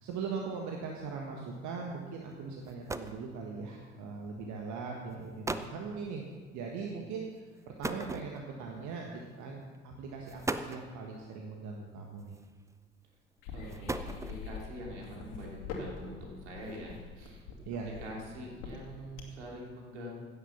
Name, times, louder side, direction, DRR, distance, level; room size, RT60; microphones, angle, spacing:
voice 1, 0.0-6.2 6.5-12.3 17.6-17.9, right 5 dB, 55° right, 1 dB, 1.6 m, -40 dB
sound 1, 2.3-2.4 2.6-3.3 4.3-4.5 5.1-5.2 5.4-5.8 7.8-8.7 9.6-9.8 10.3-10.9 12.2-12.7 13.5-14.6, right 2 dB, 10° right, 0.6 m, -37 dB
sound 2, 13.4-19.5, left 5 dB, 60° left, 2.2 m, -44 dB
voice 2, 13.5-17.4 17.9-20.3, equal, 70° right, -2 dB, 3.1 m, -44 dB
16.0 x 7.5 x 5.9 m, 1.5 s
figure-of-eight pair, 55°, 36 cm